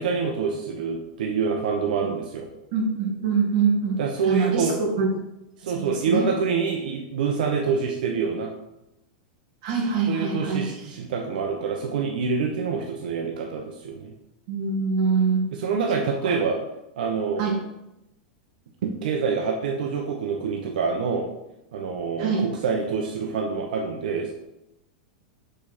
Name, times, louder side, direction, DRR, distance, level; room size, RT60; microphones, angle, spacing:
voice 1, 0.0-2.5 4.0-4.8 5.6-8.5 10.1-14.1 15.6-16.6 17.0-17.5 18.8-21.3 21.7-24.3, right 5 dB, 75° right, 1 dB, 0.9 m, -26 dB
voice 2, 2.7-5.1 5.6-6.3 9.6-10.7 14.5-15.5 16.2-16.4 17.4-17.6 22.2-22.5, right 5 dB, 45° right, -1 dB, 1.8 m, -24 dB
6.3 x 5.3 x 4.2 m, 0.91 s
supercardioid pair, 170°, 5 cm